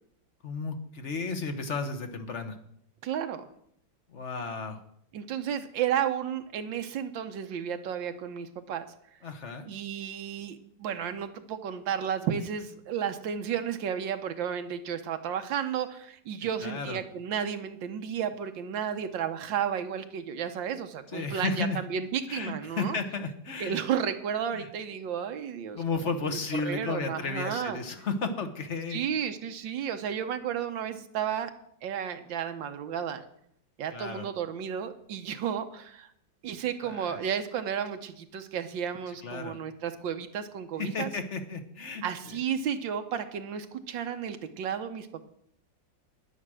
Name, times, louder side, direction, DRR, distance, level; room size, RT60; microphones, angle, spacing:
voice 1, 0.4-2.6 4.1-4.8 9.2-9.7 16.6-17.0 21.1-21.8 22.3-23.8 24.5-24.7 25.7-29.0 33.9-34.3 36.8-37.2 39.2-39.6 40.8-42.4, left 4 dB, 45° left, 8 dB, 1.2 m, -33 dB
voice 2, 3.0-3.5 5.1-8.8 9.6-23.0 23.6-27.8 28.9-31.5 31.8-33.2 33.8-36.1 36.4-41.1 42.0-45.3, right 8 dB, 85° right, 8 dB, 1.6 m, -33 dB
10.0 x 9.9 x 6.3 m, 0.70 s
omnidirectional pair, 2.0 m